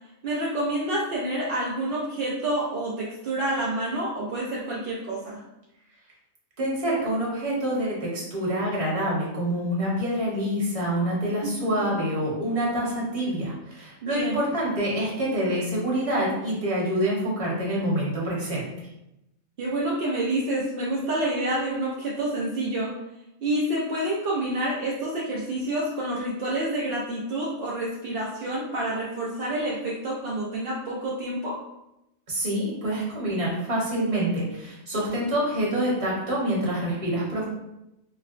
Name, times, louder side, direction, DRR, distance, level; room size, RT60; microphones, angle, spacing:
voice 1, 0.2-5.4 11.4-11.9 14.0-14.4 19.6-22.9 23.4-31.5, right 1 dB, 65° right, -5 dB, 0.5 m, -28 dB
voice 2, 6.6-18.9 32.3-37.4, right 1 dB, 30° right, -5 dB, 0.9 m, -26 dB
4.4 x 2.1 x 2.4 m, 0.89 s
omnidirectional pair, 1.5 m